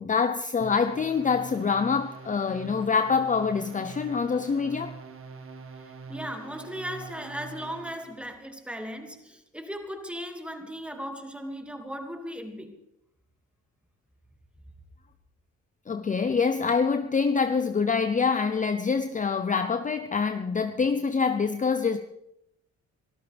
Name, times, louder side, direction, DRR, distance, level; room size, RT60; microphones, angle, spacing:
voice 1, 0.0-5.0 15.9-22.0, left 5 dB, 25° left, 0.7 m, -25 dB
sound 1, 0.6-8.2, right 4 dB, 45° right, 1.8 m, -44 dB
voice 2, 5.8-12.8, equal, 5° right, 2.3 m, -37 dB
25.0 x 13.0 x 3.5 m
cardioid pair, 90°, 30 cm